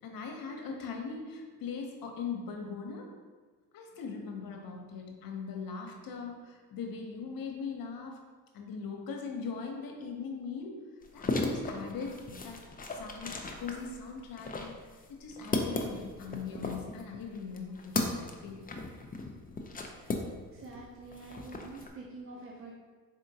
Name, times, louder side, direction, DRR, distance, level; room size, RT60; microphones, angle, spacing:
voice 1, 0.0-3.1 3.7-8.2 8.5-10.7 11.1-12.6 12.9-14.8 15.1-18.7, left 5 dB, 70° left, 2 dB, 0.8 m, -40 dB
sound 1, 11.0-20.7 21.0-21.9, left 2 dB, 25° left, 0.5 m, -36 dB
voice 2, 20.5-22.7, right 3 dB, 35° right, -1 dB, 0.6 m, -46 dB
3.9 x 3.6 x 2.7 m, 1.4 s
supercardioid pair, 65°, 36 cm